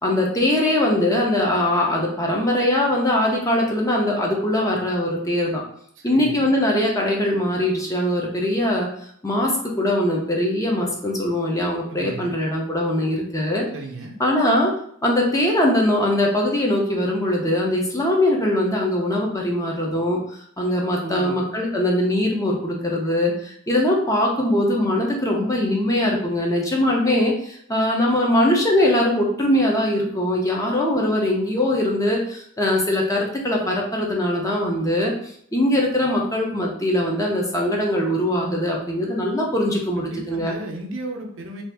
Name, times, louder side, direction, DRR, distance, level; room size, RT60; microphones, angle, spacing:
voice 1, 0.0-5.6 6.0-8.9 9.2-13.7 14.2-14.7 15.0-35.1 35.5-40.5, left 1 dB, 15° left, -1 dB, 0.6 m, -21 dB
voice 2, 6.0-6.5 11.9-12.4 13.7-14.2 21.0-21.4 40.0-41.6, right 2 dB, 65° right, 2 dB, 0.6 m, -34 dB
2.7 x 2.4 x 3.3 m, 0.67 s
head